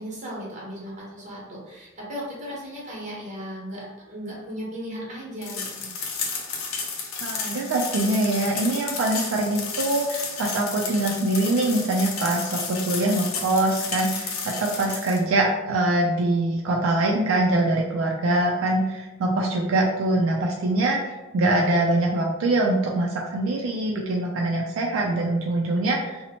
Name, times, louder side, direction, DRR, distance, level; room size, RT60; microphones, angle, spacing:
voice 1, 0.0-5.9, equal, 35° right, -5 dB, 0.9 m, -36 dB
sound 1, 5.4-15.2, left 5 dB, 90° left, 0.5 m, -32 dB
voice 2, 7.2-26.2, right 2 dB, 75° right, -1 dB, 0.3 m, -23 dB
2.7 x 2.0 x 2.8 m, 1.0 s
head